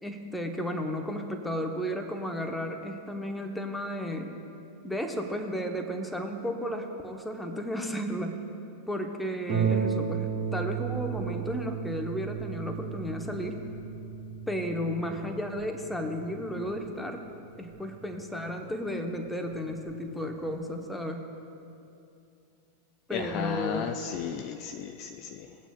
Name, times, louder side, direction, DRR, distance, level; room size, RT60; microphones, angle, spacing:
voice 1, 0.0-4.4 4.8-8.4 8.9-13.6 14.5-17.2 17.6-21.3 23.1-23.9, equal, 5° left, 4 dB, 0.9 m, -33 dB
Harp, 9.5-18.7 19.5-19.6 20.1-20.2, right 7 dB, 40° right, 1.3 m, -34 dB
voice 2, 23.1-25.6, left 8 dB, 40° left, 8 dB, 0.4 m, -34 dB
18.5 x 9.0 x 2.3 m, 2.7 s
figure-of-eight pair, 90°, 0 cm